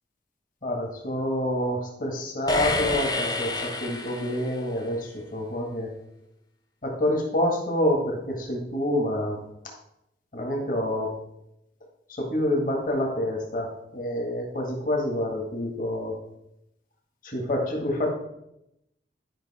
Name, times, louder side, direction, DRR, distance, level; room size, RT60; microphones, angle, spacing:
voice 1, 0.6-5.9 6.8-9.4 10.3-11.1 12.1-16.1 17.2-18.1, left 1 dB, 45° left, 0 dB, 1.7 m, -27 dB
sound 1, 2.5-4.7, left 2 dB, 20° left, 0.7 m, -28 dB
10.5 x 5.5 x 4.3 m, 0.81 s
head